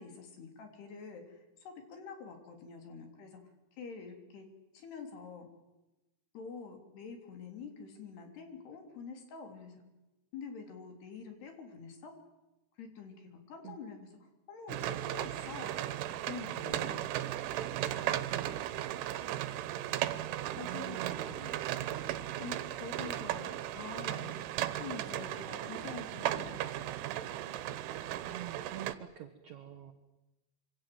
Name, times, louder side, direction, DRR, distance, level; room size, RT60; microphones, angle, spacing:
voice 1, 0.0-3.4 3.8-4.5 4.7-5.5 6.3-9.8 10.3-12.1 12.8-15.8 16.2-17.1 20.5-21.6 22.0-24.3 24.8-26.9, left 5 dB, 60° left, 5 dB, 5.3 m, -47 dB
sound 1, 14.7-29.0, right 13 dB, 85° right, 3.6 m, -36 dB
voice 2, 18.3-18.9 20.6-21.6 28.2-29.9, right 11 dB, 65° right, 5 dB, 1.8 m, -46 dB
26.0 x 25.5 x 7.9 m, 1.0 s
omnidirectional pair, 5.5 m